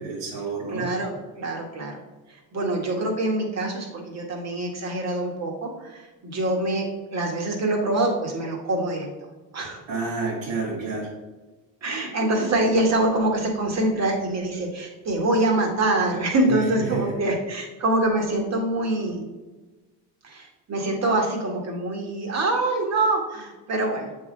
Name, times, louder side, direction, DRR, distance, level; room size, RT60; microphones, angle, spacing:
voice 1, 0.0-0.9 9.9-11.1 16.8-17.0, right 4 dB, 80° right, -6 dB, 1.9 m, -29 dB
voice 2, 0.7-2.0 2.3-9.1 9.5-9.8 11.8-19.2 20.2-24.1, right 2 dB, 40° right, 0 dB, 1.8 m, -25 dB
7.5 x 3.9 x 3.9 m, 1.2 s
supercardioid pair, 100°, 42 cm